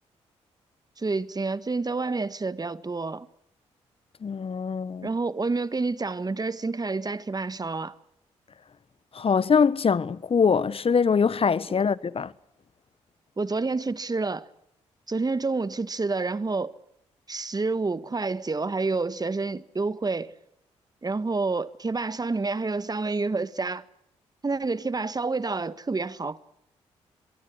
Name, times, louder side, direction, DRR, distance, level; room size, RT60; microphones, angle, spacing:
voice 1, 1.0-3.3 5.0-7.9 13.4-14.5 15.1-16.7 17.3-20.3 21.0-23.8 24.4-26.4, right 3 dB, 30° right, 1.6 m, -28 dB
voice 2, 4.2-5.1 9.1-12.3, left 6 dB, 45° left, 1.2 m, -23 dB
26.5 x 23.0 x 6.4 m
hypercardioid pair, 45°, 13 cm